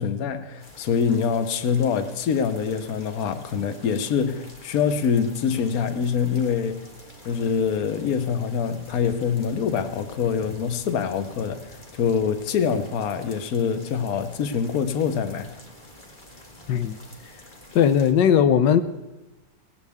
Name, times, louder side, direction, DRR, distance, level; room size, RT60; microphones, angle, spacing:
voice 1, 0.0-6.8 7.2-11.6 12.0-15.5, left 6 dB, 60° left, 1.3 m, -25 dB
sound 1, 0.6-18.1, left 1 dB, 25° left, 2.1 m, -48 dB
voice 2, 16.7-17.0 17.7-18.8, left 8 dB, 85° left, 1.4 m, -18 dB
18.5 x 18.5 x 3.5 m
omnidirectional pair, 1.9 m